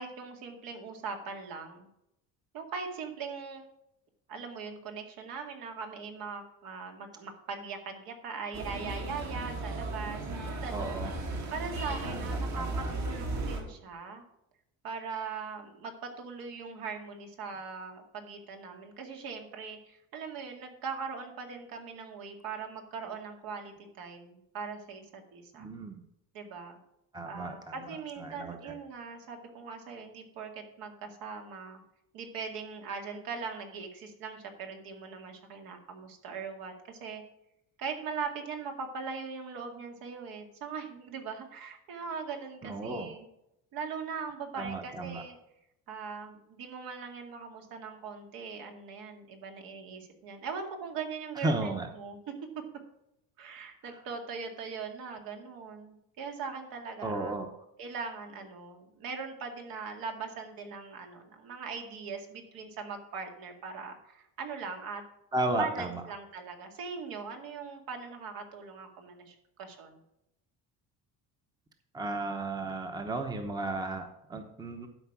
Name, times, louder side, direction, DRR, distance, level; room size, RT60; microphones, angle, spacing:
voice 1, 0.0-1.9 2.5-3.7 4.3-11.0 11.5-14.2 14.8-25.7 26.3-26.8 27.3-31.8 32.1-37.2 37.8-43.2 43.7-45.4 45.9-52.2 53.4-57.3 57.8-65.0 65.6-70.0, right 5 dB, 70° right, 4 dB, 2.2 m, -40 dB
sound 1, 8.5-13.6, right 2 dB, 50° right, 2.4 m, -35 dB
voice 2, 10.7-11.1 12.1-12.9 25.6-26.0 27.1-27.7 28.2-28.7 42.6-43.1 44.6-45.2 51.4-51.9 57.0-57.5 65.3-66.0 71.9-74.9, right 2 dB, 10° right, 6 dB, 0.9 m, -34 dB
12.0 x 5.2 x 6.0 m, 0.83 s
cardioid pair, 145°, 36 cm